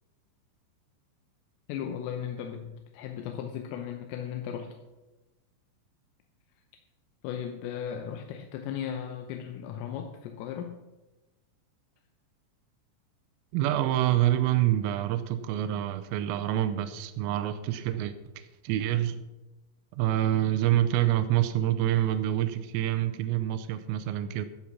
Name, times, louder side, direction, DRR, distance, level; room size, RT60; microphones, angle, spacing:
voice 1, 1.7-4.8 7.2-10.8, left 8 dB, 85° left, 4 dB, 3.4 m, -36 dB
voice 2, 13.5-19.3 20.0-24.5, right 13 dB, 90° right, 9 dB, 3.4 m, -27 dB
16.0 x 7.1 x 5.9 m, 1.1 s
omnidirectional pair, 5.9 m